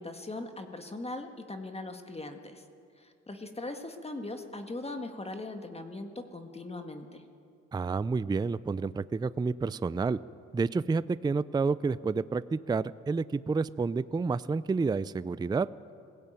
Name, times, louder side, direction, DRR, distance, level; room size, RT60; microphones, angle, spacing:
voice 1, 0.0-2.6 3.0-7.3, left 2 dB, 20° left, 5 dB, 1.8 m, -40 dB
voice 2, 7.7-10.2 10.5-15.7, right 4 dB, 15° right, 17 dB, 0.4 m, -29 dB
21.0 x 16.5 x 9.1 m, 2.4 s
cardioid pair, 90°, 30 cm